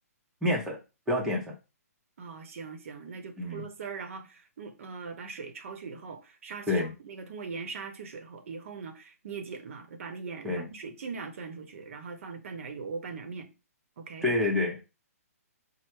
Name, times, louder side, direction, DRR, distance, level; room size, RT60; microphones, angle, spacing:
voice 1, 0.4-0.8 1.1-1.6 3.4-3.7 6.7-6.9 10.4-10.7 14.2-14.8, left 2 dB, 5° right, 0.8 m, -28 dB
voice 2, 2.2-13.5 14.0-14.2, right 5 dB, 55° right, 0.8 m, -41 dB
4.6 x 2.1 x 4.5 m
hypercardioid pair, 155°, 9 cm